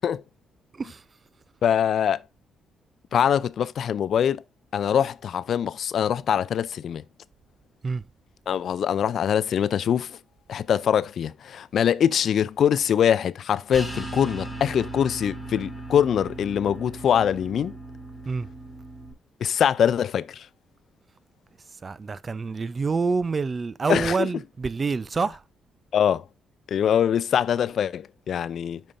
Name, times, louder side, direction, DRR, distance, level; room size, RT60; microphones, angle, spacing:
voice 1, 0.7-1.0 7.8-8.1 18.2-18.5 21.8-25.4, right 4 dB, 35° right, 0.4 m, -27 dB
voice 2, 1.6-2.2 3.1-4.4 4.7-7.0 8.5-10.2 10.5-17.8 19.4-20.5 23.9-24.3 25.9-26.2 26.7-28.8, left 9 dB, 60° left, 0.3 m, -23 dB
sound 1, 13.7-19.1, right 2 dB, ahead, 4.1 m, -37 dB
8.8 x 5.5 x 2.5 m
cardioid pair, 90°, 0 cm